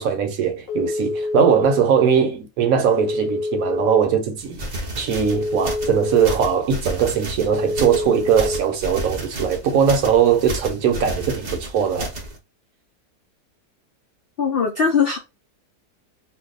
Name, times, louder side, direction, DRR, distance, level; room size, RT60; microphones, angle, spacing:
voice 1, 0.0-4.6 5.0-12.1, right 7 dB, 65° right, 1.0 m, -20 dB
Telephone, 0.7-1.8 2.9-4.0 5.2-6.3 7.5-8.6, left 2 dB, 30° left, 1.1 m, -26 dB
sound 1, 4.4-12.4, right 1 dB, 45° right, 0.5 m, -32 dB
voice 2, 14.4-15.2, left 6 dB, 90° left, 0.5 m, -20 dB
2.6 x 2.2 x 3.8 m
omnidirectional pair, 1.7 m